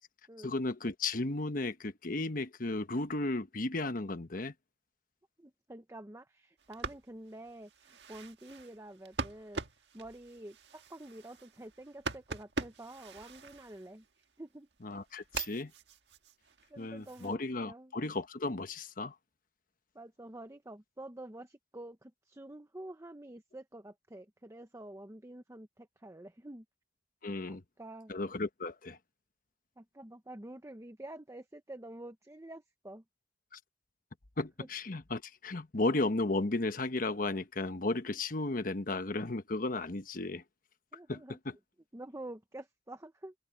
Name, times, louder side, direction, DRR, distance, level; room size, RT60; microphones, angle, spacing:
voice 1, 0.4-4.5 14.8-15.7 16.8-19.1 27.2-27.6 28.1-29.0 33.5-33.6 34.4-40.4 41.1-41.2 41.4-41.5, left 2 dB, 50° left, 1.2 m, -34 dB
voice 2, 5.4-14.7 16.7-17.9 19.9-26.6 27.5-28.1 29.8-33.0 34.6-34.7 40.9-41.4 41.9-43.3, right 1 dB, 15° right, 0.9 m, -48 dB
sound 1, 6.6-14.2 14.7-17.3, right 4 dB, 80° right, 1.6 m, -43 dB
open air
head